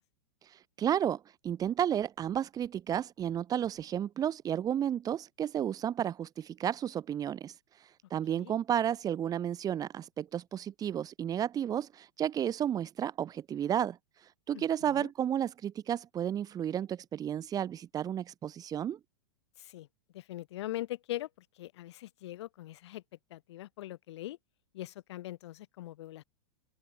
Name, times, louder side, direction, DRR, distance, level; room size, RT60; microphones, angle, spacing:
voice 1, 0.4-19.0, right 10 dB, 25° right, 3.3 m, -32 dB
voice 2, 14.5-15.1 19.6-19.9 20.1-21.3 21.6-23.0 23.3-24.4 24.7-26.2, left 15 dB, 70° left, 4.2 m, -41 dB
open air
hypercardioid pair, 135°, 15 cm